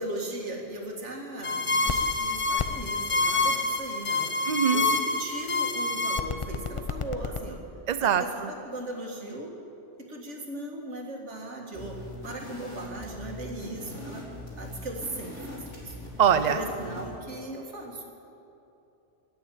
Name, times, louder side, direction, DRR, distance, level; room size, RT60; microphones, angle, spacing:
voice 1, 0.0-4.5 4.7-7.6 8.0-9.5 10.1-14.2 14.6-16.0 16.5-18.0, right 1 dB, 75° right, 1 dB, 2.2 m, -38 dB
sound 1, 1.4-7.4, left 3 dB, 35° left, 0.6 m, -27 dB
voice 2, 4.5-4.9 7.9-8.5 16.2-16.6, right 8 dB, 45° right, 11 dB, 0.7 m, -23 dB
sound 2, 11.7-17.2, left 1 dB, 90° left, 4.0 m, -41 dB
17.0 x 6.9 x 9.8 m, 2.9 s
omnidirectional pair, 1.2 m